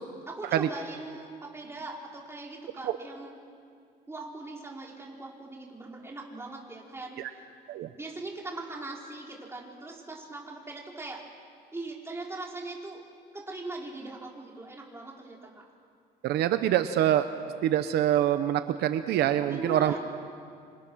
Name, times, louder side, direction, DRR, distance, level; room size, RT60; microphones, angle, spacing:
voice 1, 0.3-3.4 4.1-7.5 8.0-11.2 11.7-13.0 13.3-15.6 19.4-20.0, right 2 dB, 15° right, -2 dB, 4.8 m, -40 dB
voice 2, 16.2-17.3 17.6-19.9, right 11 dB, 75° right, 10 dB, 1.0 m, -25 dB
27.5 x 26.5 x 6.4 m, 2.2 s
cardioid pair, 110°, 17 cm